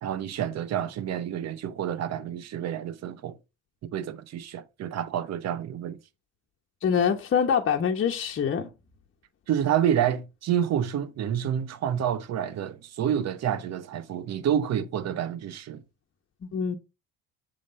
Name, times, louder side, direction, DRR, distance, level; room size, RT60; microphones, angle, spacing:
voice 1, 0.0-3.4 3.9-6.0 9.5-15.8, right 9 dB, 55° right, 1.0 m, -28 dB
voice 2, 6.8-8.7 16.4-16.8, left 7 dB, 40° left, 1.2 m, -25 dB
7.4 x 3.4 x 5.4 m
hypercardioid pair, 65°, 31 cm